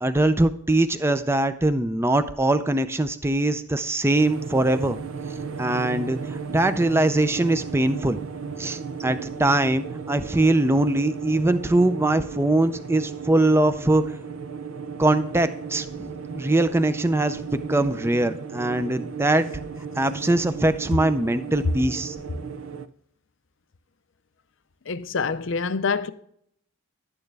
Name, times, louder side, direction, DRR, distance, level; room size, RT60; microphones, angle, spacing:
voice 1, 0.0-5.0 5.6-8.2 8.6-14.0 15.0-17.4 17.7-19.5 20.0-22.2, right 2 dB, 10° right, 0.4 m, -22 dB
sound 1, 4.2-22.9, right 5 dB, 70° right, 0.6 m, -35 dB
voice 2, 24.9-26.1, left 5 dB, 60° left, 0.6 m, -26 dB
11.5 x 8.8 x 3.4 m
head